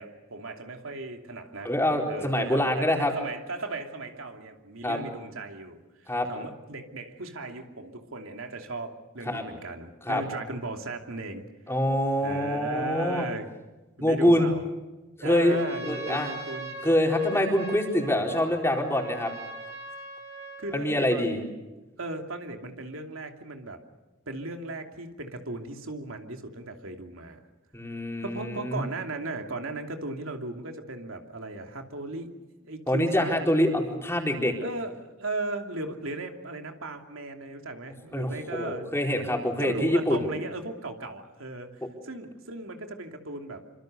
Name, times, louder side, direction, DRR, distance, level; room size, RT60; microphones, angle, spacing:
voice 1, 0.0-1.7 2.1-11.8 12.2-13.5 14.0-14.6 15.2-16.7 20.6-21.4 22.0-23.8 24.3-27.4 28.2-32.3 32.6-33.6 34.6-38.9 39.6-41.7 42.0-43.6, right 2 dB, 75° right, 4 dB, 2.9 m, -37 dB
voice 2, 1.6-3.1 4.8-5.0 6.1-6.3 9.3-9.4 10.1-10.2 11.7-13.3 14.0-14.5 15.2-15.6 15.8-16.3 16.8-19.3 20.7-21.4 27.7-28.8 32.9-34.5 38.1-40.2, left 1 dB, 10° left, 1 dB, 4.5 m, -25 dB
Trumpet, 15.3-20.8, right 2 dB, 30° right, 6.1 m, -40 dB
27.5 x 26.0 x 6.8 m, 1.1 s
head